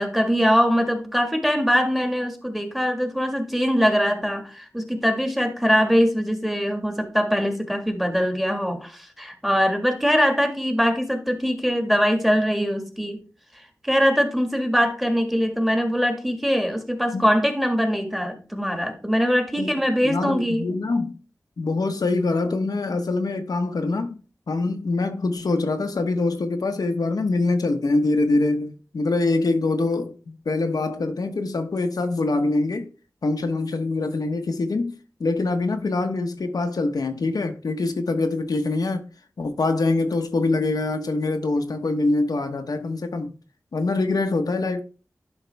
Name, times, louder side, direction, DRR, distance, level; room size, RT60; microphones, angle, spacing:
voice 1, 0.0-13.2 13.5-20.7, equal, 5° right, 1.8 m, -22 dB
voice 2, 20.0-21.2 21.6-24.2 24.5-32.9 33.2-34.9 35.2-39.0 39.4-43.4 43.7-44.8, left 3 dB, 85° left, 1.0 m, -24 dB
11.0 x 5.8 x 3.4 m
wide cardioid pair, 80°, 6 cm